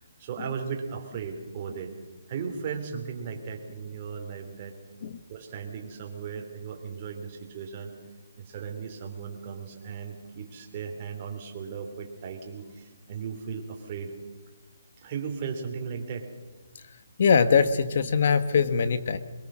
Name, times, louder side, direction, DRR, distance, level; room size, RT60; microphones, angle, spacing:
voice 1, 0.2-1.9 2.3-4.7 5.3-7.9 8.4-14.1 15.0-16.3, right 6 dB, 30° right, 2 dB, 3.1 m, -36 dB
voice 2, 17.2-19.2, left 6 dB, 50° left, 12 dB, 1.4 m, -22 dB
22.5 x 22.0 x 6.3 m, 1.3 s
hypercardioid pair, 165°, 0 cm